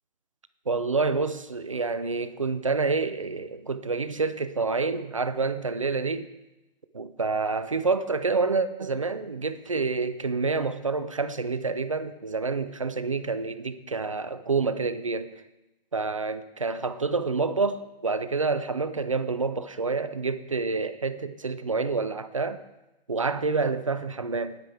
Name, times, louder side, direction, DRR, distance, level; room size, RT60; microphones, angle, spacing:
voice 1, 0.7-6.3 6.9-15.3 15.9-22.6 23.1-24.6, right 4 dB, 35° right, 0.5 m, -28 dB
19.5 x 9.2 x 3.4 m
hypercardioid pair, 180°, 30 cm